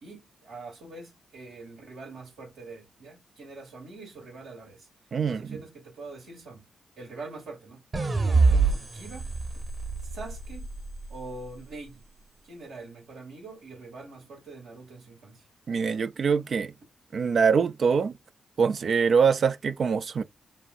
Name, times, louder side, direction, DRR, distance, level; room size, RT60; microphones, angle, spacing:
voice 1, 0.0-4.9 5.2-6.7 7.0-7.8 8.2-9.6 10.0-10.7 11.1-12.0 12.4-15.5, right 3 dB, 85° right, 2.7 m, -44 dB
voice 2, 5.1-5.6 15.7-16.7 17.1-18.2 18.6-20.2, right 6 dB, 60° right, 0.5 m, -24 dB
sound 1, 7.9-11.2, right 4 dB, 45° right, 1.4 m, -25 dB
7.2 x 2.6 x 2.6 m
cardioid pair, 60°, 0 cm